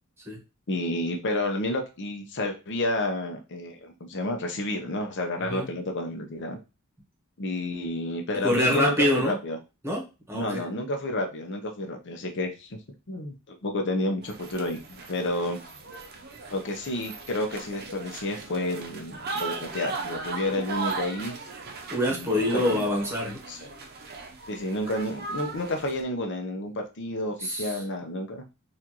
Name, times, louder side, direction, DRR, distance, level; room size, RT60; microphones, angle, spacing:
voice 1, 0.7-6.6 7.4-9.6 10.3-12.8 13.1-15.6 16.5-21.3 22.1-22.8 23.5-23.7 24.5-28.4, left 1 dB, 55° left, 3 dB, 0.8 m, -30 dB
voice 2, 8.4-9.4 9.8-10.6 21.9-23.4 27.4-27.8, left 1 dB, 10° right, -1 dB, 1.1 m, -25 dB
sound 1, 14.2-26.0, right 4 dB, 45° right, 0.6 m, -38 dB
4.2 x 2.5 x 2.9 m, 0.29 s
head